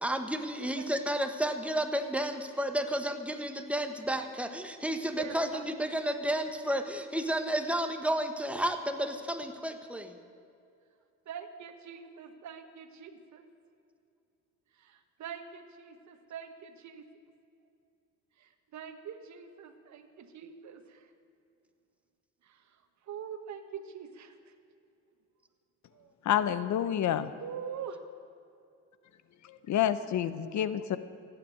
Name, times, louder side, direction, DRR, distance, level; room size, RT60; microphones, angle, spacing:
voice 1, 0.0-10.2, right 1 dB, 5° right, 6 dB, 1.4 m, -32 dB
voice 2, 5.2-5.6 11.2-13.4 14.8-17.0 18.4-21.1 22.4-22.6 23.1-24.3 25.9-26.1 27.4-28.0, right 7 dB, 65° right, 8 dB, 1.4 m, -44 dB
voice 3, 26.3-27.3 29.7-31.0, left 10 dB, 70° left, 14 dB, 0.9 m, -28 dB
15.0 x 9.3 x 9.0 m, 2.5 s
cardioid pair, 90°, 30 cm